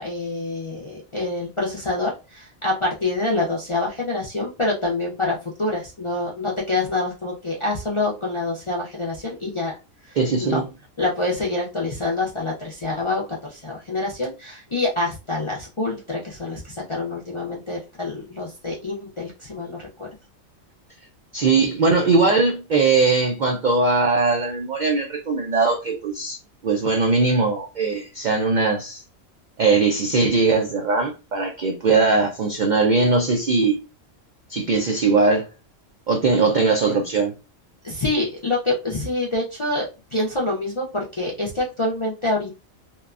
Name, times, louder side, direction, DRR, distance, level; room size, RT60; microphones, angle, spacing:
voice 1, 0.0-9.7 10.1-10.6 11.0-20.1 37.8-42.6, left 2 dB, 50° left, 0.3 m, -26 dB
voice 2, 10.1-10.7 21.3-26.4 26.6-29.0 29.6-33.8 34.5-35.5 36.1-37.3, right 3 dB, 90° right, 0.4 m, -20 dB
2.9 x 2.1 x 2.4 m
omnidirectional pair, 1.3 m